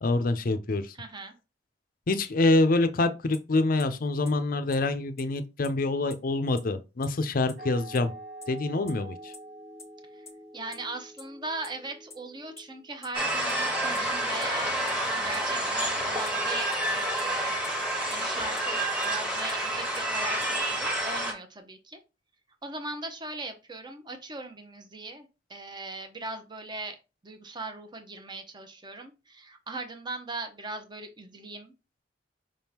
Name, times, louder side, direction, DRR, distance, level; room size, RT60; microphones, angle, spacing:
voice 1, 0.0-0.9 2.1-8.1 8.5-9.3, left 2 dB, 50° left, 0.5 m, -26 dB
voice 2, 0.9-1.3 10.1-17.6 18.1-22.0 22.6-27.0 27.2-31.7, right 2 dB, 25° right, 0.8 m, -39 dB
sound 1, 3.3-3.4 3.8-3.9 4.3-4.4 4.7-4.8 5.2-5.3 5.6-5.7 6.1-6.2 6.6-6.7 7.0-7.1 7.5-7.6 7.9-8.0 8.4-8.5 8.9-9.0 9.3-9.4 9.8-9.9 10.3-10.4 10.7-10.8 11.2-11.3 11.6-11.7 12.1-12.2 12.6-12.7 13.0-13.1 13.5-13.6 13.9-14.0 14.4-14.5 14.9-15.0 15.3-15.4 15.8-15.9 16.3-16.4 16.7-16.8 17.2-17.3 17.6-17.7 18.1-18.2 18.6-18.7 19.0-19.1 19.5-19.6 19.9-20.0 20.4-20.5, left 4 dB, 15° left, 0.9 m, -45 dB
sound 2, 7.6-13.0, right 1 dB, 85° right, 2.8 m, -46 dB
sound 3, 13.1-21.3, right 1 dB, 5° right, 1.2 m, -29 dB
5.2 x 3.5 x 2.9 m
head